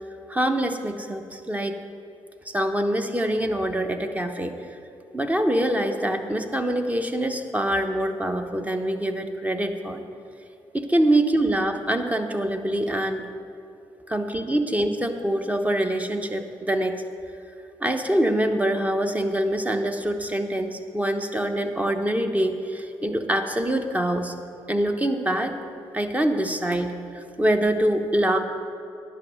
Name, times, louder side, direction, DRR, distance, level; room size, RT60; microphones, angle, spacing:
voice 1, 0.3-1.8 2.5-4.6 5.1-10.0 10.7-13.2 14.1-17.0 17.8-24.3 24.7-25.5 25.9-28.4, right 1 dB, 15° right, 6 dB, 1.0 m, -24 dB
10.5 x 6.4 x 6.3 m, 2.6 s
supercardioid pair, 50°, 11 cm